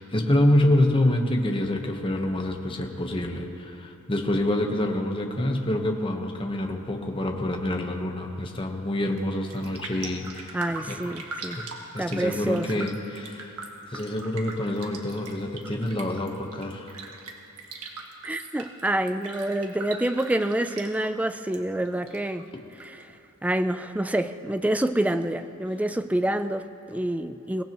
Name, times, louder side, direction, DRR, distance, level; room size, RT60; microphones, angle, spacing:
voice 1, 0.0-11.0 11.6-11.7 11.9-13.6 13.9-17.1, left 1 dB, 25° left, 3 dB, 1.0 m, -26 dB
Raindrop, 9.0-9.2 9.5-21.6 21.8-22.8 23.2-23.3, right 3 dB, 90° right, 1.5 m, -40 dB
voice 2, 10.5-11.6 12.0-12.9 18.2-22.5 22.8-23.0 23.4-27.6, right 1 dB, 5° right, 10 dB, 0.3 m, -27 dB
22.5 x 17.5 x 3.0 m, 2.8 s
head